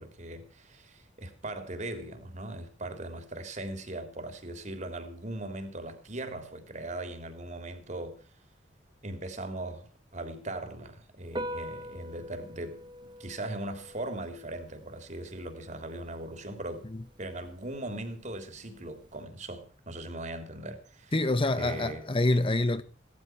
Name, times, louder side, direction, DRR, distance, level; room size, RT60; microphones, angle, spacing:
voice 1, 0.0-8.2 9.0-16.9 17.2-21.1 21.5-22.0, right 1 dB, 40° right, 3.4 m, -39 dB
Piano, 11.3-19.2, equal, 25° right, 0.8 m, -45 dB
voice 2, 21.1-22.8, left 2 dB, 30° left, 0.9 m, -26 dB
18.0 x 13.0 x 6.1 m
head